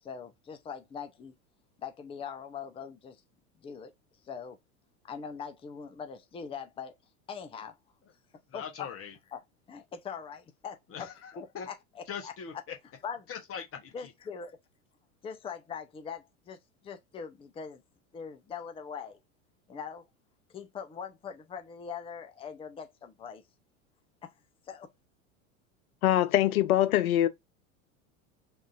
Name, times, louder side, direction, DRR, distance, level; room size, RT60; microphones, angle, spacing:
voice 1, 0.0-1.3 1.8-3.2 3.6-3.9 4.2-4.6 5.0-6.9 7.3-7.8 8.5-8.9 9.3-9.4 9.7-11.1 11.3-12.3 13.0-13.2 13.9-14.6 15.2-17.8 18.1-19.2 19.7-20.1 20.5-23.4 24.2-24.3 24.7-24.9, left 6 dB, 15° left, 0.5 m, -42 dB
voice 2, 8.5-9.2 10.9-11.7 12.1-12.7 13.3-14.1, left 7 dB, 30° left, 0.9 m, -41 dB
voice 3, 26.0-27.3, left 13 dB, 75° left, 0.7 m, -23 dB
3.6 x 2.5 x 2.4 m
hypercardioid pair, 95°, 42 cm